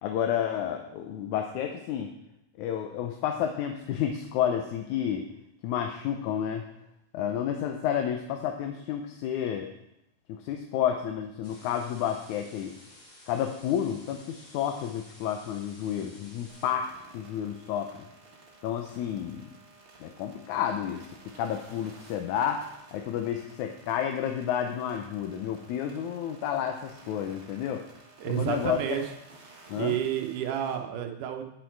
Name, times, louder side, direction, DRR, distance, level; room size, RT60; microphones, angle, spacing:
voice 1, 0.0-2.1 2.6-5.3 5.6-6.7 7.1-9.7 10.3-12.7 13.3-16.9 17.1-18.1 18.6-19.5 20.0-21.1 21.4-27.8 28.3-29.0 29.7-30.0, left 9 dB, 75° left, 4 dB, 2.1 m, -30 dB
sound 1, 11.4-16.7, left 1 dB, 30° left, 3.3 m, -53 dB
sound 2, 16.5-30.8, right 3 dB, 45° right, 2.0 m, -54 dB
voice 2, 28.2-29.0 29.8-31.4, right 10 dB, 80° right, 5 dB, 2.4 m, -30 dB
9.4 x 9.2 x 4.6 m, 0.83 s
omnidirectional pair, 3.6 m